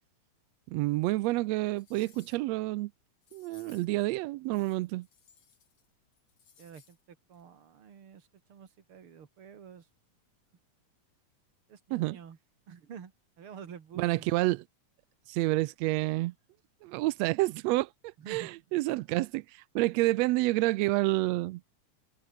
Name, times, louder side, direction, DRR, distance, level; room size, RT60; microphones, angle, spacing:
voice 1, 0.7-2.9 3.3-5.1 11.9-12.2 14.0-14.6 15.3-16.3 16.8-21.6, right 19 dB, 85° right, 1.5 m, -29 dB
sound 1, 1.0-1.1 1.6-2.6 3.2-4.0 4.5-5.9 6.1-7.0 7.3-7.4, left 7 dB, 55° left, 3.9 m, -62 dB
voice 2, 6.6-9.9 11.7-12.4 12.7-13.1 13.4-14.3 18.2-18.5, right 7 dB, 45° right, 2.7 m, -49 dB
omnidirectional pair, 3.6 m